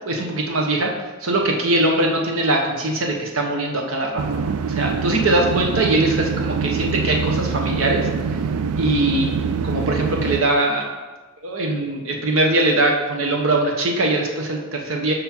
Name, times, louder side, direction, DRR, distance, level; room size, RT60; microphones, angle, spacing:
voice 1, 0.0-0.9 1.2-8.1 8.8-9.3 9.6-10.9 11.4-15.1, right 2 dB, 65° right, 1 dB, 1.1 m, -21 dB
sound 1, 4.2-10.4, right 5 dB, 85° right, 0.4 m, -24 dB
5.9 x 5.5 x 4.4 m, 1.2 s
head